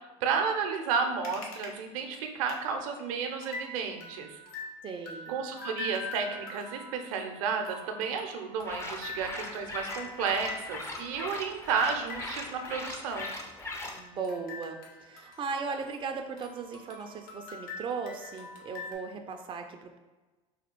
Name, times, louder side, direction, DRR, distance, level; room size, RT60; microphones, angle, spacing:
voice 1, 0.2-4.4 5.3-13.3, right 5 dB, 70° right, 5 dB, 0.7 m, -32 dB
sound 1, 1.2-1.7 2.0-2.1 2.5-2.6 3.0-3.1 3.4-16.1 16.4-18.9, left 4 dB, 55° left, 1.1 m, -44 dB
voice 2, 4.8-5.3 13.9-20.0, right 5 dB, 30° right, 4 dB, 0.5 m, -37 dB
sound 2, 8.6-14.0, left 2 dB, 15° left, 0.7 m, -40 dB
4.2 x 2.3 x 4.5 m, 1.2 s
hypercardioid pair, 85°, 18 cm